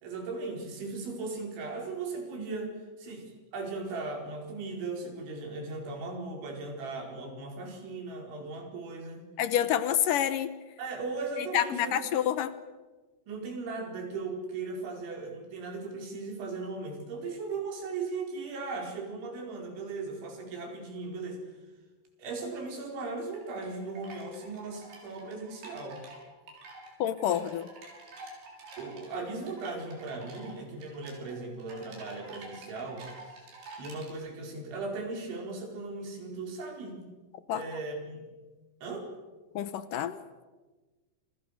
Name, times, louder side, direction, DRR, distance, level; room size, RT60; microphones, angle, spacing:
voice 1, 0.0-9.3 10.8-12.2 13.3-21.4 22.2-26.0 28.8-33.5 33.8-37.1 37.5-38.3 38.8-39.1, right 3 dB, 90° right, 2 dB, 7.1 m, -38 dB
voice 2, 9.4-10.5 11.5-12.5 27.0-27.7 37.5-37.6 39.6-40.2, left 10 dB, 75° left, 12 dB, 2.0 m, -28 dB
sound 1, 22.7-34.1, right 2 dB, 70° right, 8.2 m, -49 dB
29.5 x 26.0 x 6.7 m, 1.3 s
omnidirectional pair, 5.2 m